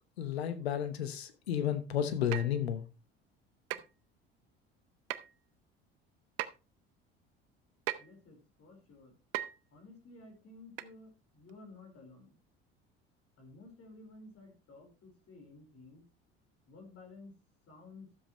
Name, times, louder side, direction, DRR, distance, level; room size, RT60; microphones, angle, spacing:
voice 1, 0.2-2.8, left 9 dB, 90° left, 1.1 m, -32 dB
sound 1, 2.3-2.6 3.7-3.9 5.1-5.3 6.4-6.5 7.9-8.1 9.3-9.6 10.8-10.9 11.5-11.6, right 16 dB, 75° right, 0.7 m, -37 dB
voice 2, 8.0-9.2 9.7-12.4 13.4-16.0 16.7-17.3 17.7-18.1, left 3 dB, 50° left, 4.4 m, -54 dB
12.5 x 7.5 x 3.1 m
hypercardioid pair, 65°, 31 cm